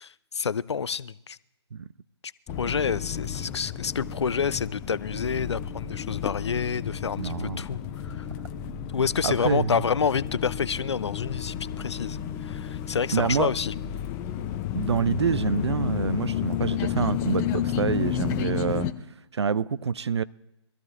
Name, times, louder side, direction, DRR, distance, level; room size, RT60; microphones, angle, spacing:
voice 1, 0.0-1.4 2.2-2.3 2.6-8.3 8.9-13.7, left 6 dB, 70° left, 0.5 m, -28 dB
sound 1, 2.5-18.9, left 10 dB, 15° left, 0.5 m, -32 dB
voice 2, 7.2-7.6 9.2-9.8 13.1-13.5 14.7-18.9 19.3-20.2, right 6 dB, 70° right, 0.4 m, -26 dB
24.0 x 14.0 x 2.5 m
figure-of-eight pair, 135°, 15 cm